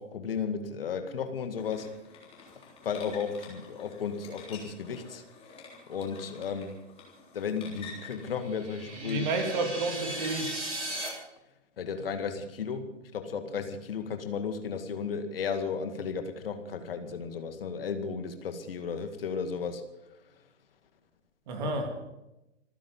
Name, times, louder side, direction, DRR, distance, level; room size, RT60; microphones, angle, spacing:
voice 1, 0.0-1.9 2.8-5.2 5.9-6.7 7.3-9.3 11.8-19.8 21.6-21.8, left 6 dB, 50° left, 7 dB, 2.1 m, -34 dB
sound 1, 1.6-11.1, left 4 dB, 15° left, 3.7 m, -50 dB
sound 2, 8.3-11.1, right 1 dB, 75° right, 7.8 m, -37 dB
voice 2, 9.0-10.7 21.5-21.9, right 2 dB, 40° right, 5 dB, 3.1 m, -31 dB
25.5 x 10.0 x 5.6 m, 0.93 s
figure-of-eight pair, 120°, 36 cm